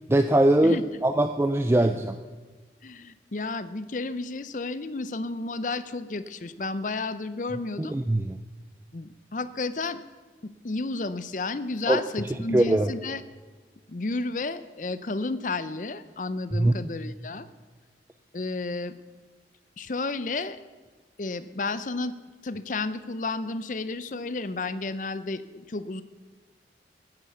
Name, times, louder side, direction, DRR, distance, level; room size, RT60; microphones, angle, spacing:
voice 1, 0.1-2.2 7.8-8.4 11.9-12.0 12.5-12.9 16.5-16.7, right 1 dB, 15° right, 7 dB, 0.4 m, -21 dB
voice 2, 2.8-8.0 8.9-10.0 10.4-13.2 13.9-17.5 18.3-18.9 19.8-20.6 21.2-22.2 22.4-26.0, left 3 dB, 45° left, 14 dB, 0.6 m, -32 dB
13.5 x 9.2 x 6.9 m, 1.3 s
head